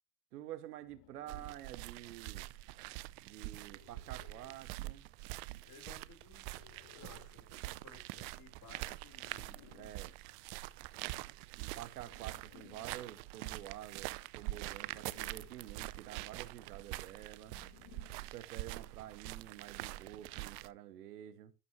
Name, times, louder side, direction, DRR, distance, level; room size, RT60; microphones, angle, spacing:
voice 1, 0.3-2.5 3.2-5.1 9.7-10.1 11.5-17.6 18.2-21.5, right 12 dB, 85° right, 0.9 m, -49 dB
sound 1, 0.8-1.7 3.7-4.7 6.4-7.4 9.1-10.1 12.0-13.0 14.7-15.7 17.4-18.4, left 15 dB, 60° left, 1.2 m, -61 dB
sound 2, 1.3-20.7, right 19 dB, 65° right, 0.6 m, -45 dB
voice 2, 5.6-6.5 6.9-9.6, left 4 dB, 40° left, 4.4 m, -58 dB
12.5 x 7.0 x 3.1 m
hypercardioid pair, 75°, 45 cm